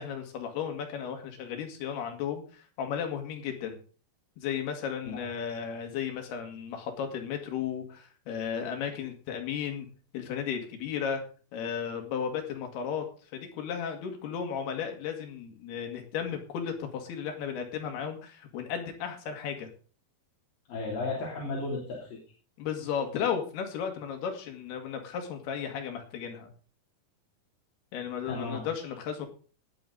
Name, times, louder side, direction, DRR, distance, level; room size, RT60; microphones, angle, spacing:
voice 1, 0.0-3.8 4.4-9.9 10.1-11.2 11.5-13.0 13.3-19.7 22.6-26.5 27.9-29.3, left 7 dB, 90° left, 4 dB, 3.9 m, -34 dB
voice 2, 20.7-22.2 28.3-28.7, left 3 dB, 65° left, -4 dB, 4.8 m, -34 dB
19.0 x 7.1 x 3.9 m, 0.39 s
omnidirectional pair, 4.4 m